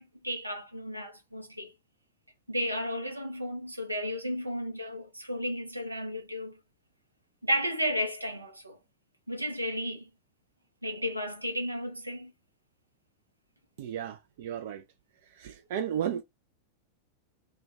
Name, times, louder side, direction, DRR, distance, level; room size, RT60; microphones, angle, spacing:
voice 1, 0.0-1.7 2.5-6.6 7.4-8.8 9.3-10.1 10.8-12.3, equal, 85° right, 0.6 m, -33 dB
voice 2, 13.8-14.8 15.4-16.2, right 9 dB, 55° right, 0.3 m, -34 dB
2.2 x 2.2 x 3.8 m
figure-of-eight pair, 90°, 0 cm